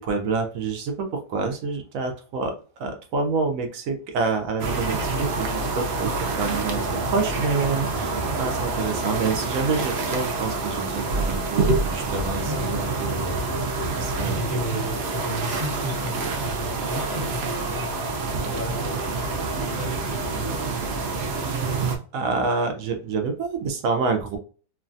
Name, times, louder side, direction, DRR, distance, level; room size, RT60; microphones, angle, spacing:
voice 1, 0.0-13.5 13.9-14.6 22.1-24.4, right 4 dB, 70° right, 0.8 m, -28 dB
sound 1, 4.6-22.0, right 3 dB, 90° right, 0.5 m, -27 dB
voice 2, 12.4-12.8 14.2-20.7, equal, 30° right, 0.9 m, -33 dB
3.1 x 2.2 x 2.5 m
omnidirectional pair, 1.8 m